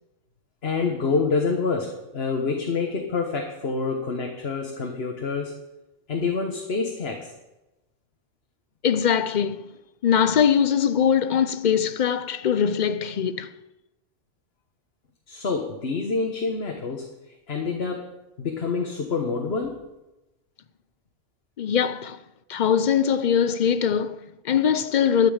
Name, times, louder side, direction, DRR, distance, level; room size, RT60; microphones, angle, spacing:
voice 1, 0.6-5.6 6.1-7.3 15.3-17.1 17.5-19.8, left 4 dB, 80° left, 1.5 m, -27 dB
voice 2, 8.8-9.7 10.0-13.5 21.6-22.2 22.5-25.3, left 8 dB, 55° left, 0.7 m, -22 dB
12.0 x 6.0 x 8.8 m
omnidirectional pair, 1.0 m